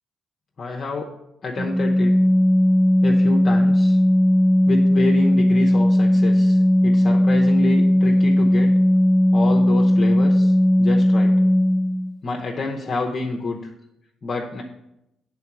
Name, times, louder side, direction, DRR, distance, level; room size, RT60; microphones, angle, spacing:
voice 1, 0.6-1.1 1.4-2.1 3.0-4.0 4.7-8.7 9.3-11.3 12.2-13.7 14.2-14.6, left 3 dB, 45° left, 0 dB, 0.8 m, -28 dB
Organ, 1.6-12.1, left 1 dB, 25° right, 0.4 m, -17 dB
7.3 x 3.8 x 5.9 m, 0.86 s
cardioid pair, 90°, 0 cm